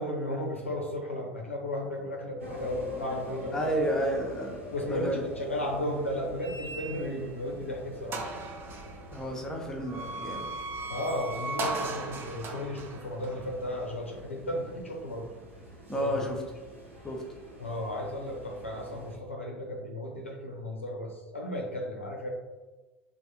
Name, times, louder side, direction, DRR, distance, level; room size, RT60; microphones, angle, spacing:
voice 1, 0.0-3.7 4.7-8.2 10.9-15.3 15.9-16.2 17.6-22.3, left 1 dB, 90° left, 0 dB, 0.5 m, -34 dB
sound 1, 2.4-19.2, equal, 75° right, 0.8 m, -45 dB
voice 2, 3.5-4.6 4.9-5.2 9.1-10.5 15.9-16.4 17.0-17.2, equal, 10° left, 0 dB, 0.6 m, -31 dB
sound 2, 6.4-7.3 7.7-7.8 8.1-14.2, right 2 dB, 35° right, 0.5 m, -38 dB
3.3 x 2.1 x 2.8 m, 1.2 s
figure-of-eight pair, 75°, 7 cm